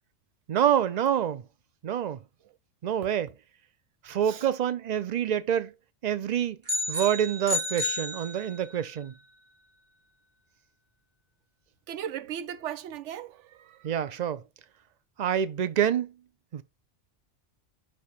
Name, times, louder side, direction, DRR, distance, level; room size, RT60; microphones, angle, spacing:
voice 1, 0.5-1.4 1.8-2.2 2.8-3.3 4.0-5.7 6.0-6.6 6.9-9.1 13.8-14.4 15.2-16.1 16.5-16.6, right 9 dB, 50° right, 0.5 m, -27 dB
sound 1, 6.7-8.8, left 2 dB, 20° right, 1.0 m, -31 dB
voice 2, 11.9-14.1, right 10 dB, 75° right, 0.9 m, -38 dB
5.6 x 3.2 x 5.6 m
omnidirectional pair, 1.3 m